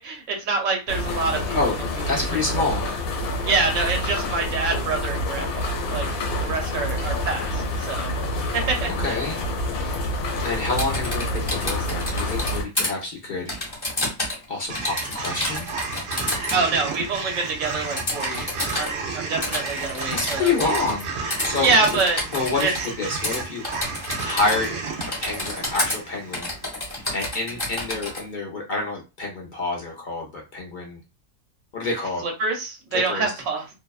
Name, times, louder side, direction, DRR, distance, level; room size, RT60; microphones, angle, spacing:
voice 1, 0.0-1.6 2.1-2.2 2.5-2.7 3.5-6.1 6.4-8.1 8.5-8.8 9.0-9.1 16.5-20.7 21.6-22.2 22.6-22.7 32.2-33.6, right 4 dB, 65° right, 1 dB, 1.0 m, -26 dB
sound 1, 0.9-12.6, left 1 dB, 90° left, 1.1 m, -27 dB
voice 2, 2.1-2.9 9.0-9.4 10.4-13.5 14.5-15.7 20.1-22.0 22.3-24.8 25.2-26.5 26.8-31.0 31.7-32.2 32.9-33.3, left 3 dB, 50° left, -1 dB, 0.6 m, -28 dB
Typing, 10.6-12.9 13.5-14.4 14.7-16.6 18.0-18.9 19.4-21.0 21.3-22.9 23.2-23.4 23.6-24.7 25.0-26.0 26.3-28.2, left 1 dB, 20° left, 0.9 m, -29 dB
sound 2, 14.7-27.0, right 4 dB, 85° right, 0.4 m, -32 dB
2.6 x 2.1 x 2.3 m, 0.28 s
omnidirectional pair, 1.5 m